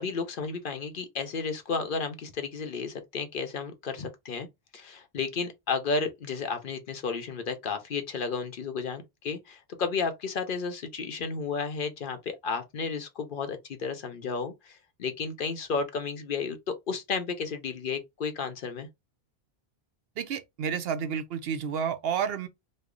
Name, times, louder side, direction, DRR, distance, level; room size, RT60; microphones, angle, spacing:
voice 1, 0.0-4.5 4.7-18.9, left 5 dB, 60° left, 0.8 m, -32 dB
voice 2, 20.2-22.5, right 7 dB, 70° right, 0.8 m, -30 dB
3.1 x 2.1 x 3.7 m
omnidirectional pair, 1.1 m